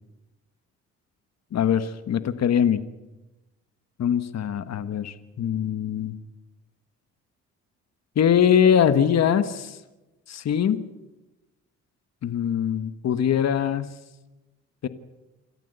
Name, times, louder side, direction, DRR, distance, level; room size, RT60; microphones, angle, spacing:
voice 1, 1.5-2.8 4.0-6.1 8.1-9.8 10.3-10.8 12.2-14.0 14.8-14.9, left 8 dB, 60° left, 11 dB, 1.5 m, -22 dB
27.5 x 14.0 x 8.2 m, 1.1 s
cardioid pair, 90°, 30 cm